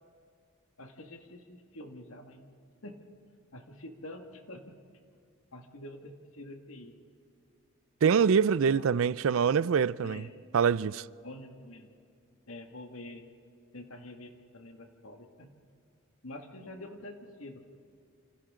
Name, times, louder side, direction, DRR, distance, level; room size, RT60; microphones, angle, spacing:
voice 1, 0.8-2.5 2.8-3.0 3.5-4.8 5.5-7.0 8.7-9.0 10.0-10.3 11.2-11.9 12.5-13.3 13.7-15.6 16.2-17.6, left 1 dB, 75° left, 1.9 m, -46 dB
voice 2, 8.0-10.2 10.5-11.1, right 6 dB, 70° right, 0.4 m, -25 dB
28.0 x 26.5 x 3.8 m
head